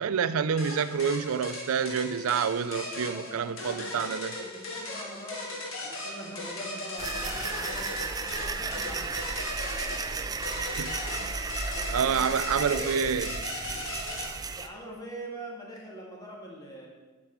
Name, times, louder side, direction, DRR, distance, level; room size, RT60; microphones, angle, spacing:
voice 1, 0.0-4.3 10.8-11.3 11.9-13.4, right 6 dB, 90° right, 14 dB, 0.4 m, -28 dB
sound 1, 0.6-14.3, left 2 dB, 70° left, 1.6 m, -38 dB
voice 2, 3.0-4.0 4.3-8.0 8.4-9.2 11.7-12.9 14.5-16.9, right 1 dB, 20° left, -2 dB, 1.8 m, -43 dB
sound 2, 7.0-14.7, right 4 dB, 20° right, 0.4 m, -34 dB
8.3 x 6.0 x 5.9 m, 1.3 s
head